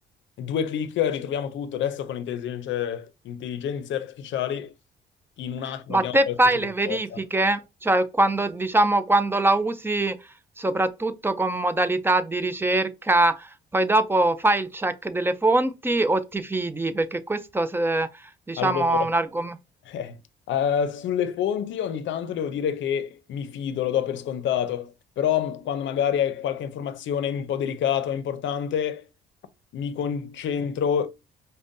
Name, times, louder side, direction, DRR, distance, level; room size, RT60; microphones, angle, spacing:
voice 1, 0.4-4.7 5.4-6.4 6.9-7.2 18.6-19.1 19.9-20.2 20.5-29.1 29.7-31.1, left 9 dB, 70° left, 0.6 m, -27 dB
voice 2, 5.9-10.2 10.6-18.1 18.5-19.6, right 2 dB, 10° right, 0.4 m, -23 dB
5.0 x 2.2 x 2.6 m
cardioid pair, 90°, 20 cm